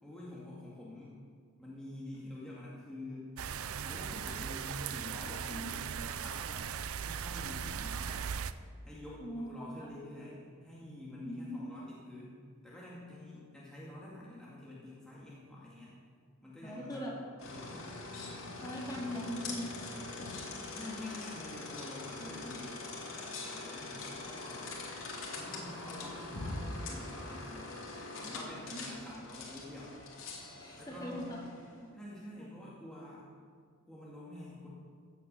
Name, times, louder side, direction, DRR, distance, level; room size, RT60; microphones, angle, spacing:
voice 1, 0.0-1.2 1.6-3.3 3.8-6.7 7.0-8.3 8.8-15.9 16.4-17.0 17.4-17.9 20.7-22.8 23.2-24.8 25.4-27.8 28.2-30.0 30.8-31.3 31.9-33.3 33.9-34.7, left 1 dB, 5° left, -7 dB, 2.1 m, -47 dB
sound 1, 3.4-8.5, right 7 dB, 85° right, 0.5 m, -38 dB
voice 2, 5.5-6.0 9.2-9.5 9.8-9.9 11.2-11.7 16.6-17.2 18.6-19.9 22.2-22.5 28.4-28.9 30.6-31.4 31.8-32.0 32.4-32.5, equal, 20° left, -2 dB, 2.5 m, -41 dB
sound 2, 17.4-31.8, left 3 dB, 65° left, 2.7 m, -43 dB
15.5 x 8.4 x 6.9 m, 2.1 s
head